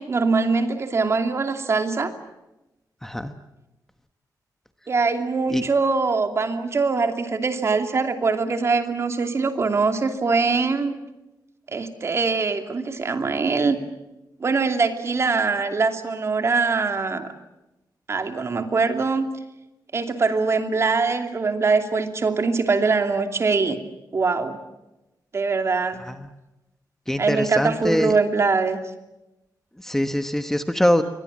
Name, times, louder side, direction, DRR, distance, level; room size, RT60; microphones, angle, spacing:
voice 1, 0.0-2.1 4.9-10.9 11.7-13.8 14.4-17.3 18.1-19.3 19.9-23.8 24.1-24.6 25.3-26.0 27.2-28.8, right 4 dB, 40° right, 6 dB, 2.7 m, -22 dB
voice 2, 3.0-3.3 5.5-5.6 26.0-26.3 27.1-28.2 29.8-31.0, left 1 dB, 5° left, 8 dB, 1.2 m, -23 dB
28.5 x 23.5 x 7.4 m, 0.97 s
wide cardioid pair, 150°, 7 cm